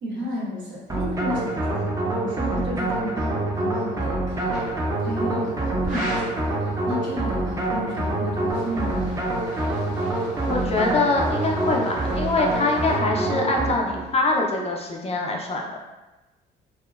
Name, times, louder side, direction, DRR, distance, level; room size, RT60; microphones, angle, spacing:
voice 1, 0.0-4.6 5.0-9.1, equal, 70° right, -6 dB, 1.0 m, -33 dB
sound 1, 0.9-14.1, right 2 dB, 15° right, 0.5 m, -26 dB
sound 2, 4.5-4.8 5.8-6.4 8.3-13.0, equal, 40° right, 0.8 m, -39 dB
voice 2, 10.5-15.7, left 2 dB, 30° left, 1 dB, 0.4 m, -24 dB
2.8 x 2.1 x 2.3 m, 1.1 s
cardioid pair, 90°, 20 cm